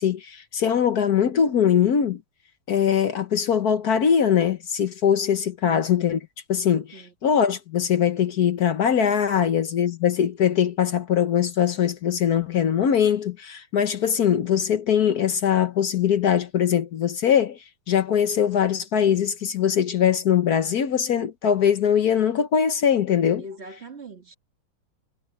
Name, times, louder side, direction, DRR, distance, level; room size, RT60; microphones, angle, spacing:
voice 1, 0.0-2.2 2.7-6.2 6.5-17.6 17.9-23.4, left 8 dB, 55° left, 1.2 m, -22 dB
voice 2, 23.4-24.3, right 1 dB, 30° right, 2.1 m, -42 dB
omnidirectional pair, 2.4 m